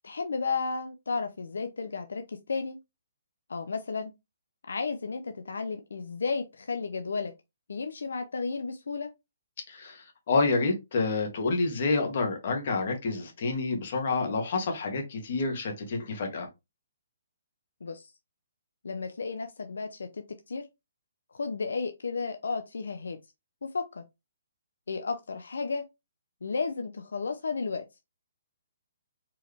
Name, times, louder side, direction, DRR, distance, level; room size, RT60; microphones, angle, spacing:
voice 1, 0.0-2.8 3.5-4.1 4.7-7.3 7.7-9.1 17.8-18.1 18.8-20.6 21.3-23.2 23.6-24.0 24.9-25.8 26.4-27.8, left 4 dB, 85° left, 0.6 m, -33 dB
voice 2, 9.7-16.5, left 3 dB, 50° left, 1.7 m, -28 dB
4.6 x 3.1 x 3.3 m
hypercardioid pair, 160°, 0 cm